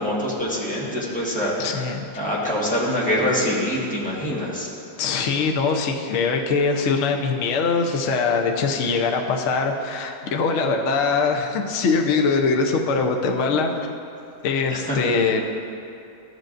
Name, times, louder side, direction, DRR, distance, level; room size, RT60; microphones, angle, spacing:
voice 1, 0.0-1.8 2.1-4.7 14.9-15.0, left 1 dB, 5° left, -7 dB, 1.2 m, -24 dB
voice 2, 1.6-2.1 5.0-13.7 14.4-15.4, left 4 dB, 75° left, 2 dB, 0.6 m, -22 dB
13.5 x 8.0 x 2.6 m, 2.6 s
omnidirectional pair, 2.2 m